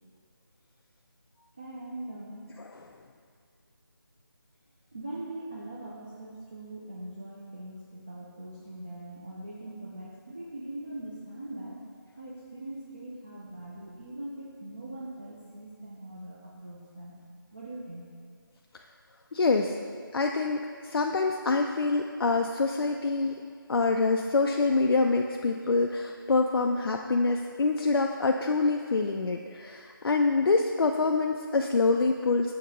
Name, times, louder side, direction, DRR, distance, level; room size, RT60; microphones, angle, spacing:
voice 1, 1.6-2.5 4.9-11.8 12.2-17.2 17.5-18.1, right 1 dB, 20° right, -5 dB, 0.4 m, -41 dB
voice 2, 19.3-19.7 20.1-23.4 23.7-32.6, left 3 dB, 90° left, 3 dB, 0.4 m, -26 dB
6.6 x 2.8 x 5.2 m, 2.1 s
figure-of-eight pair, 170°, 12 cm